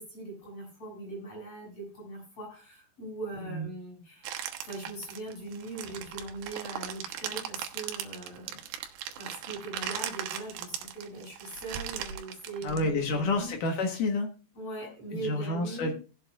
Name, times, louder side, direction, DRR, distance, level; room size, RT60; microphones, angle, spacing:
voice 1, 0.0-8.7 9.2-13.5 14.5-15.9, right 2 dB, 30° left, -3 dB, 8.1 m, -40 dB
sound 1, 4.2-13.4, right 10 dB, 75° right, 3.0 m, -38 dB
voice 2, 12.6-14.3 15.1-15.9, left 2 dB, 65° left, 3 dB, 2.1 m, -29 dB
19.5 x 7.7 x 2.4 m, 0.36 s
omnidirectional pair, 5.7 m